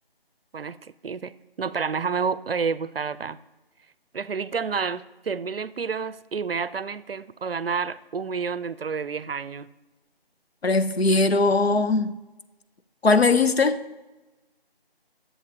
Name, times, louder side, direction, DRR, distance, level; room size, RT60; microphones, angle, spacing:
voice 1, 0.5-3.4 4.1-9.7, right 5 dB, 70° right, 0.5 m, -29 dB
voice 2, 10.6-12.1 13.0-13.8, left 3 dB, 85° left, 0.8 m, -20 dB
18.5 x 7.2 x 2.8 m
figure-of-eight pair, 175°, 30 cm